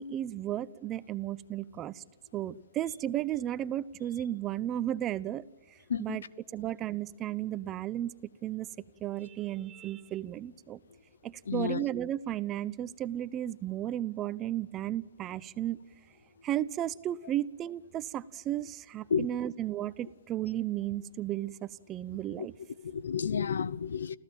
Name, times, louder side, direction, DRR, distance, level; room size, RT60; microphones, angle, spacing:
voice 1, 0.0-2.0 2.3-5.4 6.0-6.2 6.5-8.1 8.4-8.7 9.0-10.8 11.2-15.8 16.4-22.5, right 12 dB, 25° right, 0.8 m, -34 dB
voice 2, 5.9-6.2 11.5-11.8 19.1-19.3 22.3-22.5 22.8-24.2, left 6 dB, 80° left, 0.8 m, -31 dB
30.0 x 15.0 x 9.1 m
hypercardioid pair, 135°, 0 cm